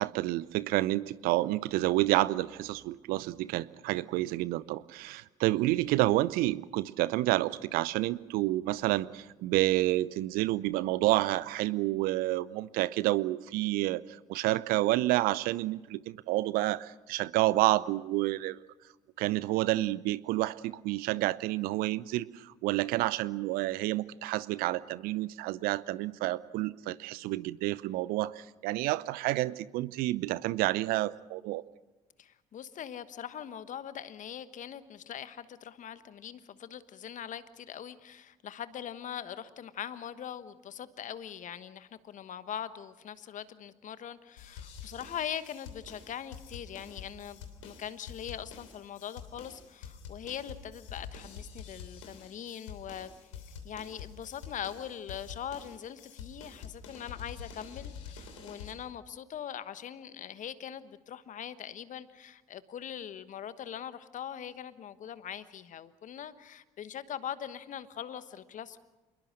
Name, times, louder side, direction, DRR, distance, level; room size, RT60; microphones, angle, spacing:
voice 1, 0.0-14.0 14.3-18.6 19.2-31.6, right 17 dB, 65° right, 19 dB, 0.7 m, -29 dB
voice 2, 32.2-53.1 53.6-68.8, left 9 dB, 50° left, 13 dB, 1.3 m, -42 dB
sound 1, 44.4-58.7, left 6 dB, 80° left, 3.2 m, -47 dB
27.5 x 21.5 x 6.5 m, 1.1 s
figure-of-eight pair, 45°, 16 cm